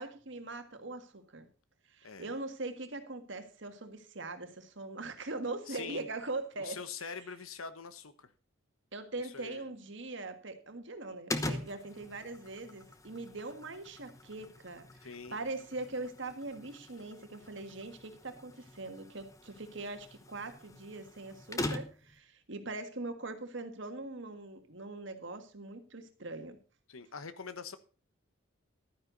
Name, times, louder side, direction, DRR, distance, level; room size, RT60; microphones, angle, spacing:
voice 1, 0.0-1.5 1.9-7.2 8.9-26.6, right 2 dB, 60° right, 1.6 m, -42 dB
voice 2, 5.7-6.1 6.6-8.3 9.2-9.7 15.0-15.4 26.9-27.8, left 5 dB, 85° left, 1.1 m, -44 dB
sound 1, 11.3-22.2, left 2 dB, 15° left, 0.9 m, -43 dB
12.0 x 9.8 x 3.9 m
head